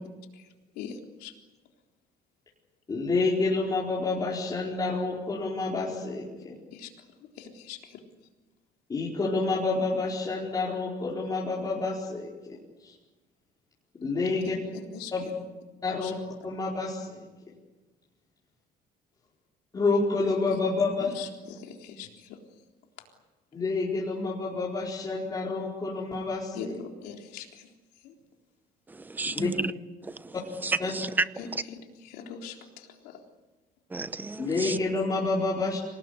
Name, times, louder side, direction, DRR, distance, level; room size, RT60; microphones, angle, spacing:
voice 1, 0.7-1.3 6.7-8.0 14.7-15.1 16.0-16.1 20.5-20.6 21.0-22.4 23.5-23.6 26.5-27.7 28.0-28.1 31.4-33.2, left 7 dB, 90° left, 3.9 m, -42 dB
voice 2, 2.9-6.5 8.9-12.6 12.8-12.9 14.0-14.5 15.1-15.3 15.8-16.1 16.4-17.2 19.7-21.1 23.5-26.7 29.3-29.5 30.8-30.9 34.4-35.8, left 3 dB, 25° left, 4.7 m, -28 dB
voice 3, 28.9-29.7 30.0-30.3 30.6-31.3 31.5-31.6 33.9-34.8, right 3 dB, 10° right, 0.8 m, -31 dB
26.5 x 19.0 x 9.9 m
cardioid pair, 150°, 16 cm